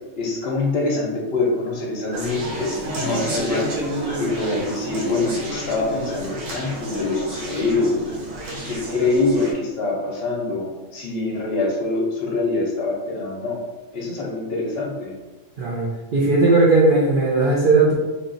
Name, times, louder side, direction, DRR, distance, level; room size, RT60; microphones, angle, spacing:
voice 1, 0.2-3.7 4.2-7.9 8.7-13.6 13.9-15.1, left 3 dB, 60° left, -2 dB, 0.9 m, -24 dB
Conversation, 2.1-9.5, right 1 dB, 90° right, 1.2 m, -30 dB
voice 2, 15.6-17.9, right 3 dB, 50° right, -6 dB, 0.7 m, -17 dB
3.6 x 2.4 x 3.8 m, 1.2 s
omnidirectional pair, 1.3 m